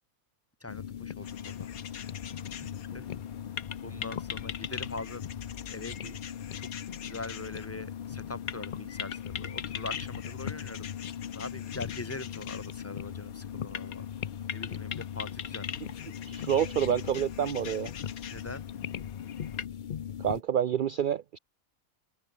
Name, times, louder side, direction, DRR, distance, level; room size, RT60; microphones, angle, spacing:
voice 1, 0.6-1.3 1.6-1.7 2.9-3.1 3.8-5.2 5.7-6.2 6.6-6.7 7.0-10.8 11.3-14.1 14.5-15.8 18.3-18.6, left 2 dB, 10° left, 1.6 m, -42 dB
sound 1, 0.7-20.4, left 9 dB, 55° left, 0.5 m, -39 dB
sound 2, 1.2-19.7, left 8 dB, 90° left, 1.6 m, -43 dB
voice 2, 16.2-17.9 20.2-21.4, right 9 dB, 75° right, 0.4 m, -28 dB
open air
omnidirectional pair, 1.5 m